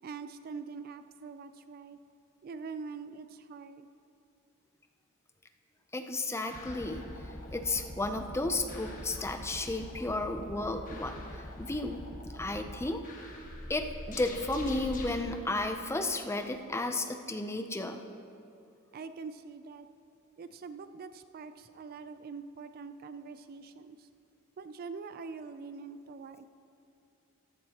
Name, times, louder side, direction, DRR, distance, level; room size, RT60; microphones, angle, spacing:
voice 1, 0.0-2.0 2.4-3.9 18.9-19.9 20.4-24.1 24.6-26.5, right 5 dB, 45° right, 11 dB, 0.3 m, -44 dB
voice 2, 5.9-7.0 7.5-11.2 11.6-12.1 12.3-13.0 13.7-18.0, left 2 dB, 10° left, 6 dB, 0.5 m, -33 dB
sound 1, 6.5-15.2, left 1 dB, 40° left, 1.3 m, -43 dB
14.0 x 12.5 x 2.9 m, 2.7 s
head